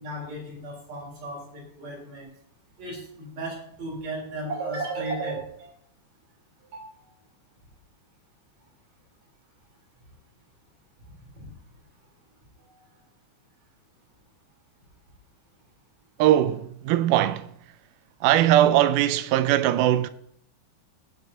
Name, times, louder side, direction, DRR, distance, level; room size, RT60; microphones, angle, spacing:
voice 1, 0.0-2.3 2.8-5.7 6.7-6.9 11.4-11.5 12.7-12.8, right 2 dB, 55° right, 4.7 m, -34 dB
voice 2, 16.2-17.5 18.2-20.1, right 13 dB, 85° right, 2.1 m, -20 dB
20.0 x 7.9 x 2.8 m
omnidirectional pair, 3.7 m